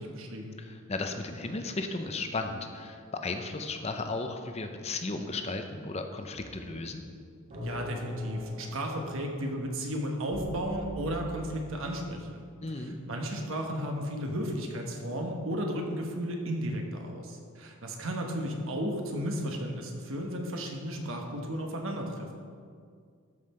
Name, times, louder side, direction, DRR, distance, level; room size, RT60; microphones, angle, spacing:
voice 1, 0.0-0.6 7.6-12.4 12.8-22.3, equal, 60° right, 2 dB, 1.1 m, -34 dB
voice 2, 0.6-7.0 12.6-13.0, left 3 dB, 30° left, 6 dB, 0.6 m, -35 dB
sound 1, 6.3-12.2, left 1 dB, 35° right, 2.4 m, -41 dB
13.0 x 5.5 x 4.3 m, 2.2 s
head